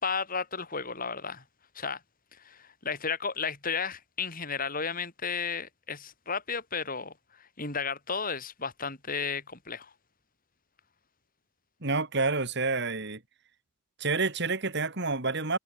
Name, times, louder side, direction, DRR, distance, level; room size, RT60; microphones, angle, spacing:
voice 1, 0.0-1.4 1.7-2.0 2.3-9.9, left 5 dB, 40° left, 6.6 m, -33 dB
voice 2, 11.8-13.2 14.0-15.6, right 3 dB, 55° right, 2.8 m, -28 dB
head